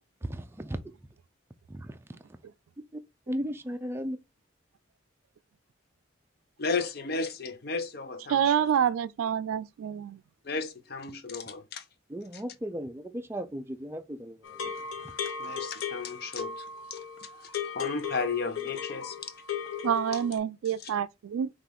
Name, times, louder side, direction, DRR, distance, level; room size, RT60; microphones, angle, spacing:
voice 1, 0.2-0.9 1.7-2.0 2.9-3.0 3.3-4.2 12.1-14.7 15.0-15.2, equal, 10° right, 0.4 m, -36 dB
voice 2, 6.6-8.5 10.4-11.8 15.4-16.6 16.9-17.0 17.3-19.3 20.8-20.9, left 4 dB, 50° left, 0.7 m, -34 dB
voice 3, 8.3-10.2 19.8-21.5, right 8 dB, 90° right, 0.3 m, -27 dB
sound 1, 14.4-20.4, left 7 dB, 85° left, 0.7 m, -36 dB
5.9 x 2.4 x 3.4 m
head